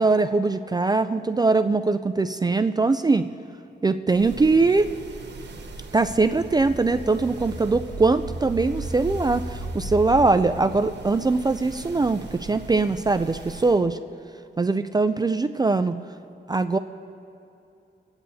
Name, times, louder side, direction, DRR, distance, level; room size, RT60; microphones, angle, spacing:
voice 1, 0.0-3.3 3.8-4.9 5.9-14.0 14.6-16.0 16.5-16.8, right 3 dB, 20° right, 9 dB, 0.3 m, -22 dB
sound 1, 4.1-13.9, right 4 dB, 65° right, 1.1 m, -41 dB
sound 2, 5.6-10.3, equal, 25° left, 2.2 m, -35 dB
25.5 x 8.9 x 2.7 m, 2.8 s
wide cardioid pair, 115°, 19 cm